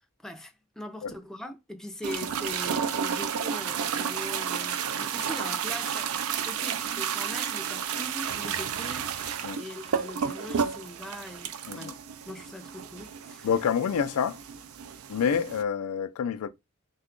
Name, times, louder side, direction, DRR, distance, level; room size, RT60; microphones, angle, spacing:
voice 1, 0.2-6.2 6.4-9.2 9.6-12.0 12.3-13.5, left 1 dB, ahead, 0.4 m, -41 dB
sound 1, 2.0-15.6, right 7 dB, 75° right, 0.4 m, -32 dB
voice 2, 11.6-12.0 13.4-14.4 15.1-16.5, left 7 dB, 90° left, 0.4 m, -27 dB
2.8 x 2.3 x 3.6 m
head